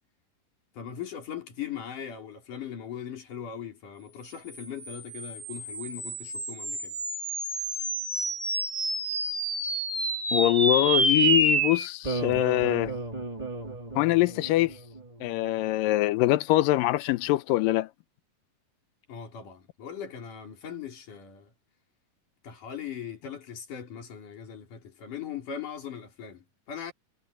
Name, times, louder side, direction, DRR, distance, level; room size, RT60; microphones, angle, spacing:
voice 1, 0.7-7.0 19.1-21.5 22.4-26.9, left 8 dB, 65° left, 5.5 m, -39 dB
sound 1, 4.6-15.2, right 2 dB, 15° right, 1.9 m, -29 dB
voice 2, 10.3-12.9 14.0-14.7 15.2-17.9, left 17 dB, 80° left, 2.3 m, -24 dB
omnidirectional pair, 4.0 m